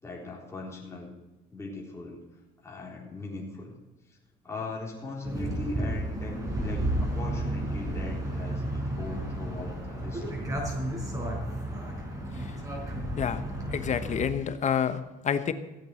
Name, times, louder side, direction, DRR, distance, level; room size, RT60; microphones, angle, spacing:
voice 1, 0.0-1.1 1.5-2.2 2.6-3.8 4.1-4.2 4.4-10.4, left 2 dB, 15° left, -3 dB, 3.9 m, -39 dB
sound 1, 5.2-14.3, right 1 dB, 20° right, 4.6 m, -32 dB
voice 2, 13.7-15.0 15.2-15.5, left 8 dB, 45° left, 11 dB, 1.1 m, -28 dB
15.5 x 8.2 x 7.7 m, 1.1 s
cardioid pair, 110°, 17 cm